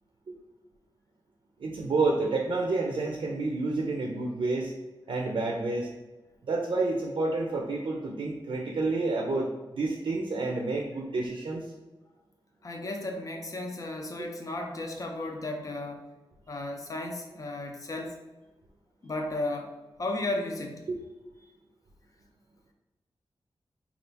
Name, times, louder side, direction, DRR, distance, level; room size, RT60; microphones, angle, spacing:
voice 1, 1.6-4.7 5.1-5.9 6.4-11.6 20.9-21.0, right 3 dB, 70° right, 0 dB, 0.5 m, -29 dB
voice 2, 12.6-16.1 16.5-18.2 19.0-20.9, left 2 dB, 40° left, 3 dB, 0.6 m, -34 dB
4.1 x 2.4 x 3.4 m, 1.1 s
wide cardioid pair, 140°, 9 cm